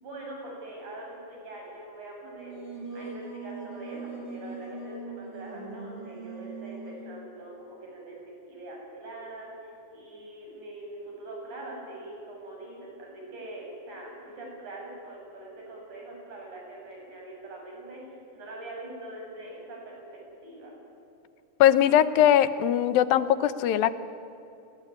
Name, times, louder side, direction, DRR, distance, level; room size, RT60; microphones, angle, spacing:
voice 1, 0.0-20.7, right 2 dB, 55° right, -1 dB, 9.2 m, -43 dB
Singing, 2.2-7.1, right 3 dB, 35° right, 5.7 m, -41 dB
voice 2, 21.6-23.9, left 10 dB, 80° left, 13 dB, 2.7 m, -20 dB
29.0 x 20.0 x 9.8 m, 2.7 s
omnidirectional pair, 4.2 m